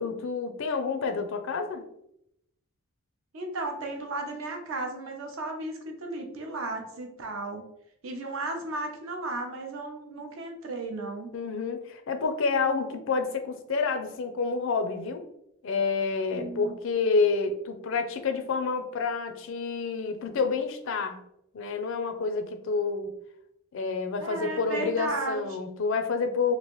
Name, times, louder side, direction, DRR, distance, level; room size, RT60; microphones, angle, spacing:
voice 1, 0.0-1.8 11.3-15.2 15.6-21.2 21.5-23.1 23.7-26.5, left 4 dB, 60° left, 7 dB, 0.4 m, -28 dB
voice 2, 3.3-7.7 8.0-11.3 16.3-16.7 24.2-25.4, right 2 dB, 60° right, 3 dB, 0.6 m, -34 dB
3.1 x 2.5 x 3.0 m, 0.77 s
head